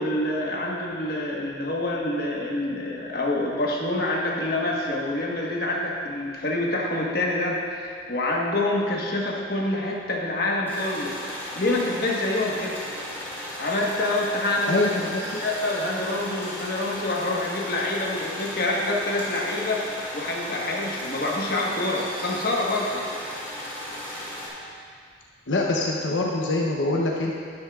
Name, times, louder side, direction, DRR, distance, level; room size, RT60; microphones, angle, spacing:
voice 1, 0.0-12.8 13.5-14.8 15.4-23.0, left 2 dB, 50° left, -3 dB, 1.4 m, -26 dB
sound 1, 10.7-24.5, left 1 dB, 10° left, 2.4 m, -36 dB
voice 2, 14.7-15.4 25.5-27.4, left 2 dB, 85° left, -2 dB, 0.8 m, -24 dB
12.0 x 11.0 x 2.4 m, 2.3 s
head